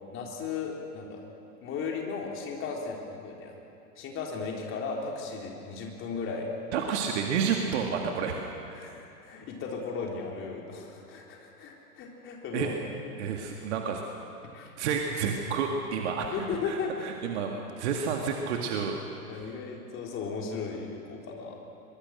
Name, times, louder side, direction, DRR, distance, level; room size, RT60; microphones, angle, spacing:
voice 1, 0.1-1.2 1.6-3.6 4.0-6.5 8.7-12.7 13.0-13.1 14.5-14.7 16.3-17.1 19.3-21.5, left 5 dB, 25° left, 0 dB, 3.9 m, -36 dB
voice 2, 6.7-8.4 12.5-12.7 13.2-14.0 14.8-16.3 16.7-19.0, right 6 dB, 45° right, 2 dB, 2.0 m, -30 dB
23.5 x 23.0 x 6.5 m, 2.7 s
figure-of-eight pair, 110°, 47 cm